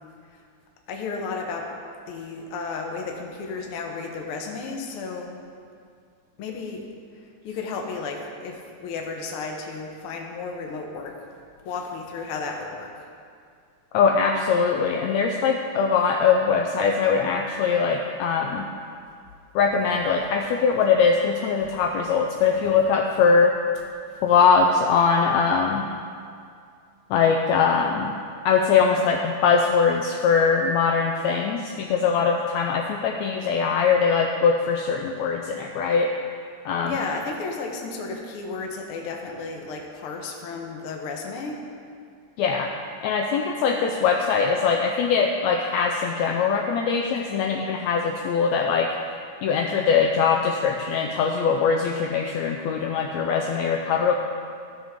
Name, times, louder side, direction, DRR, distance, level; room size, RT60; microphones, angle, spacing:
voice 1, 0.9-1.7 2.1-5.4 6.4-6.8 7.1-11.2 11.6-13.1 20.1-20.2 21.7-21.8 24.1-24.2 36.8-41.6, left 4 dB, 70° left, 1 dB, 1.3 m, -33 dB
voice 2, 13.9-18.7 19.5-23.5 24.2-25.9 27.1-28.1 28.4-36.1 36.6-37.0 42.4-42.7 43.0-48.9 49.4-54.1, left 5 dB, 85° left, 1 dB, 1.5 m, -21 dB
15.0 x 6.2 x 3.6 m, 2.3 s
omnidirectional pair, 3.8 m